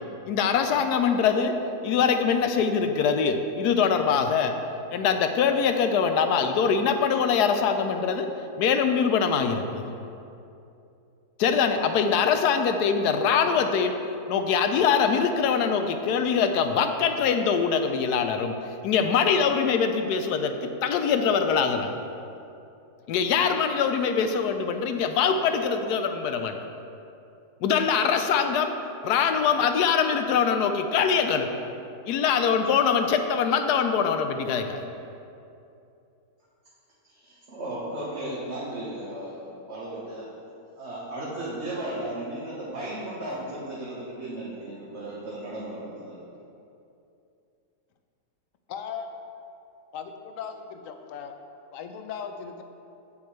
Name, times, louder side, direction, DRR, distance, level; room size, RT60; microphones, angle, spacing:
voice 1, 0.3-1.5 1.8-4.5 4.9-8.3 8.6-9.9 11.4-14.0 14.3-18.5 18.8-21.9 23.1-26.6 27.6-28.7 29.0-31.5 32.1-34.9, left 6 dB, 80° left, 7 dB, 1.2 m, -23 dB
voice 2, 37.1-40.3 40.8-46.2, right 1 dB, 45° right, -8 dB, 1.5 m, -35 dB
voice 3, 48.7-49.2 49.9-51.3 51.7-52.6, left 7 dB, 65° left, 6 dB, 0.9 m, -37 dB
8.7 x 8.5 x 3.2 m, 2.7 s
omnidirectional pair, 1.7 m